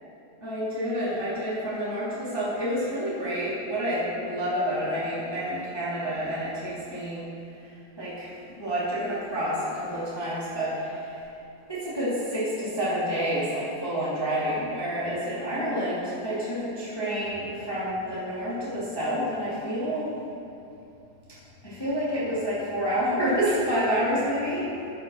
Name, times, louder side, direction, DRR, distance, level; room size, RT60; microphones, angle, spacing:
voice 1, 0.4-7.2 8.0-8.3 8.6-11.2 11.7-20.1 21.6-24.7, equal, 10° left, -10 dB, 2.0 m, -28 dB
8.1 x 7.7 x 6.3 m, 2.7 s
omnidirectional pair, 3.7 m